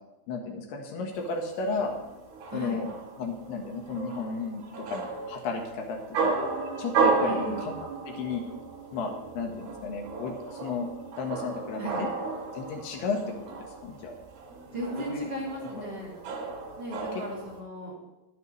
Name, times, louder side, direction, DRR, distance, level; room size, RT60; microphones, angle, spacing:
voice 1, 0.3-1.9 2.5-2.9 3.2-6.4 6.8-7.8 8.1-8.5 8.9-10.9 11.2-12.1 12.5-14.2 15.0-15.2 15.6-15.8 17.1-17.2, left 4 dB, 85° left, 1 dB, 3.4 m, -34 dB
sound 1, 1.2-17.6, right 4 dB, 80° right, 4.7 m, -33 dB
voice 2, 7.2-7.6 11.8-12.0 14.7-16.1 16.8-17.9, equal, 30° right, -6 dB, 3.6 m, -36 dB
18.0 x 9.7 x 3.2 m, 0.98 s
omnidirectional pair, 4.5 m